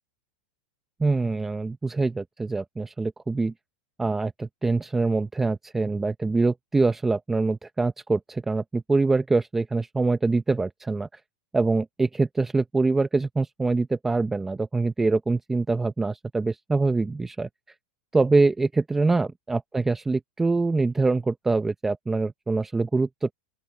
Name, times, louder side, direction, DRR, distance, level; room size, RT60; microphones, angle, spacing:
voice 1, 1.0-3.5 4.0-11.2 11.5-17.5 18.1-23.3, right 3 dB, 10° right, 0.7 m, -24 dB
open air
supercardioid pair, 135°, 3 cm